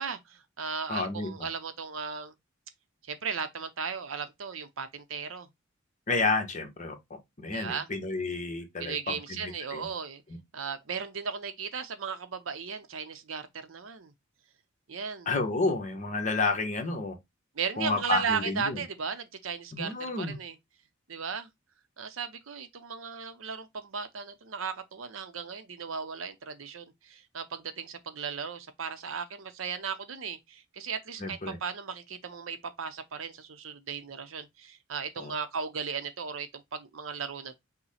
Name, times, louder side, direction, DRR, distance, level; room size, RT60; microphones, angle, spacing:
voice 1, 0.0-2.3 3.1-5.5 7.5-7.9 8.8-10.2 10.5-14.1 14.9-15.3 17.5-20.6 21.1-21.5 22.0-37.6, right 6 dB, 80° right, 0.7 m, -36 dB
voice 2, 0.9-1.3 6.1-6.9 7.4-9.9 15.3-17.1 17.8-18.8 19.7-20.4 31.2-31.6 35.2-35.3, left 3 dB, 40° left, 1.1 m, -30 dB
5.6 x 2.2 x 4.1 m
head